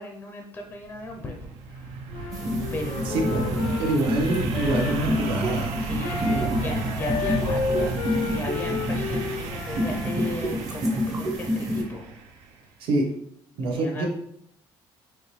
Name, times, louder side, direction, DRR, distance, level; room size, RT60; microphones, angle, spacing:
voice 1, 0.0-2.1 2.7-3.9 5.8-7.9 8.3-12.0 13.7-14.0, left 2 dB, 20° left, 2 dB, 0.5 m, -36 dB
sound 1, 0.8-12.5, right 3 dB, 85° right, 0.6 m, -33 dB
Wind instrument woodwind instrument, 2.1-10.1, left 5 dB, 85° left, 0.6 m, -33 dB
sound 2, 2.3-11.8, left 1 dB, 35° right, 0.9 m, -29 dB
voice 2, 3.0-3.4 3.8-5.7 6.3-6.5 12.8-13.0 13.6-14.1, right 2 dB, 65° right, 1 dB, 0.9 m, -26 dB
4.7 x 2.9 x 3.1 m, 0.72 s
cardioid pair, 160°, 10 cm